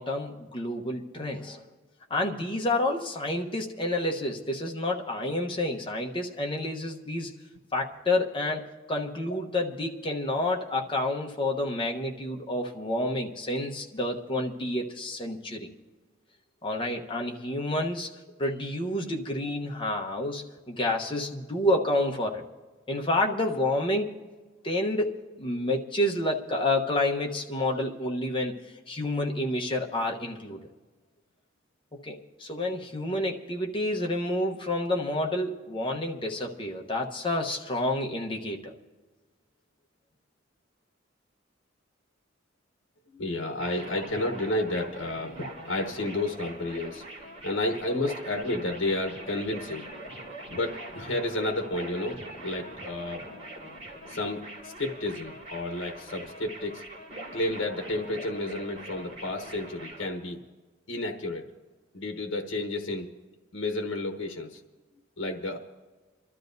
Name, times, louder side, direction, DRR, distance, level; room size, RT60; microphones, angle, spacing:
voice 1, 0.0-1.6 2.1-7.3 7.7-15.7 16.6-18.1 18.4-22.4 22.9-24.1 24.6-28.5 28.9-30.6 31.9-38.7, left 1 dB, 25° left, 0 dB, 1.0 m, -29 dB
voice 2, 43.1-45.4 45.6-47.0 47.4-49.9 50.5-53.3 54.1-56.8 57.3-60.4 60.9-61.5 61.9-63.1 63.5-64.6 65.2-65.6, left 2 dB, 70° left, 4 dB, 1.1 m, -31 dB
sound 1, 43.6-60.1, right 1 dB, 35° right, 2.9 m, -42 dB
28.0 x 12.5 x 2.7 m, 1.3 s
head